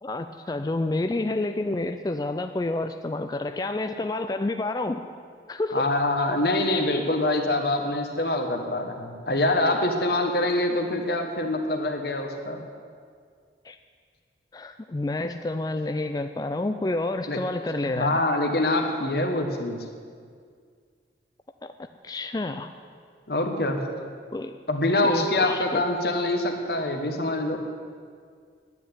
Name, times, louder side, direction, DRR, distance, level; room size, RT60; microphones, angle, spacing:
voice 1, 0.0-5.1 5.5-5.9 13.6-13.8 14.5-18.2 21.6-21.7 22.0-22.7 24.3-24.5 25.0-25.8, left 2 dB, 20° left, 8 dB, 0.4 m, -29 dB
voice 2, 5.7-12.6 17.3-17.4 17.9-19.8 23.3-23.8 24.7-27.6, left 2 dB, 60° left, 4 dB, 1.4 m, -25 dB
10.0 x 9.3 x 9.7 m, 2.1 s
head